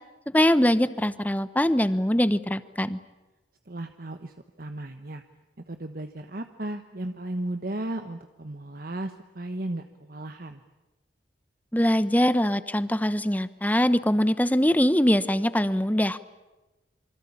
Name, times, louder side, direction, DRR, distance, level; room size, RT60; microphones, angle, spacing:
voice 1, 0.3-3.0 11.7-16.2, equal, 10° left, 14 dB, 0.9 m, -22 dB
voice 2, 3.7-5.2 5.7-10.6, right 1 dB, 55° right, 7 dB, 1.2 m, -35 dB
26.5 x 25.0 x 8.7 m, 1.1 s
head